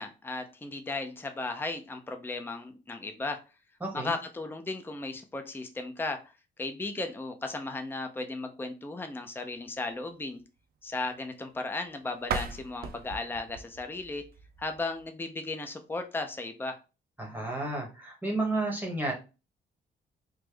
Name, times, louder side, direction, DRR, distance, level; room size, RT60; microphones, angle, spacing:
voice 1, 0.0-3.4 3.9-6.3 6.6-10.4 10.8-14.2 14.6-16.8, left 2 dB, 10° left, 6 dB, 0.5 m, -35 dB
voice 2, 3.8-4.1 17.2-19.1, right 2 dB, 10° right, -1 dB, 1.0 m, -31 dB
sound 1, 12.2-15.1, right 5 dB, 60° right, 0.5 m, -38 dB
3.4 x 2.0 x 3.3 m, 0.30 s
cardioid pair, 80°, 18 cm